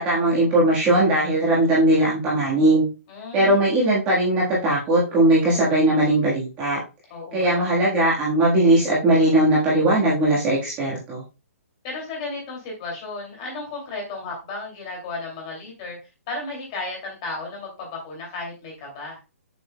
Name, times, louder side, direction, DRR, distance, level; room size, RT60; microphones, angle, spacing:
voice 1, 0.0-2.9 3.3-6.8 7.3-11.2, right 1 dB, 15° right, -6 dB, 1.4 m, -19 dB
voice 2, 3.1-3.6 7.1-7.7 11.8-16.0 16.3-19.2, left 3 dB, 25° left, -1 dB, 2.5 m, -34 dB
6.9 x 6.8 x 2.2 m, 0.29 s
hypercardioid pair, 175°, 8 cm